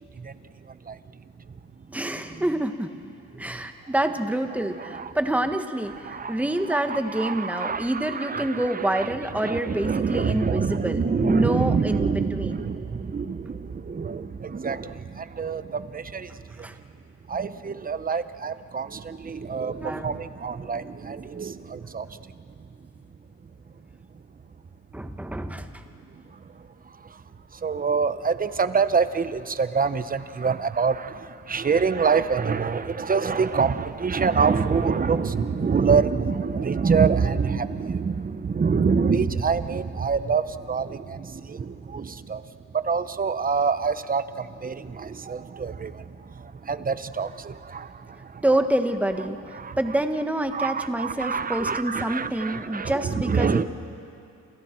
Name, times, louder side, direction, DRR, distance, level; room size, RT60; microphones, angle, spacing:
voice 1, 1.9-2.9 3.3-12.6 16.6-16.8 19.8-20.2 24.9-25.8 48.4-49.4 49.8-53.6, right 1 dB, 5° right, 7 dB, 1.4 m, -27 dB
voice 2, 6.0-6.4 6.7-9.1 9.4-16.3 16.6-16.7 17.3-22.1 27.6-42.4 42.7-48.4 49.5-49.8 50.5-53.6, right 5 dB, 30° right, 12 dB, 0.9 m, -26 dB
29.0 x 28.0 x 4.6 m, 2.6 s
cardioid pair, 90°, 30 cm